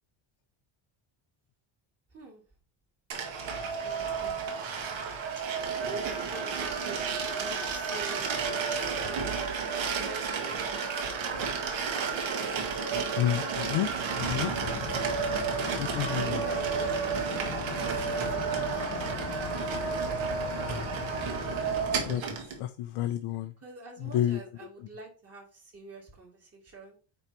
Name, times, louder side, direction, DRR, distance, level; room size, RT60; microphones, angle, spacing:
voice 1, 2.1-2.4 3.4-3.6 3.8-4.6 5.4-5.5 5.7-7.0 7.3-8.7 9.0-11.3 16.1-19.2 23.6-27.0, right 2 dB, 30° right, -1 dB, 2.1 m, -46 dB
sound 1, 3.1-22.6, right 5 dB, 65° right, 1.8 m, -31 dB
voice 2, 13.2-13.9 14.2-14.5 15.8-16.4 22.1-22.2 22.6-23.5 24.0-24.4, left 12 dB, 90° left, 7 dB, 0.8 m, -29 dB
sound 2, 14.2-22.1, left 8 dB, 35° left, 0.6 m, -40 dB
8.8 x 3.1 x 4.4 m, 0.36 s
cardioid pair, 170°, 50 cm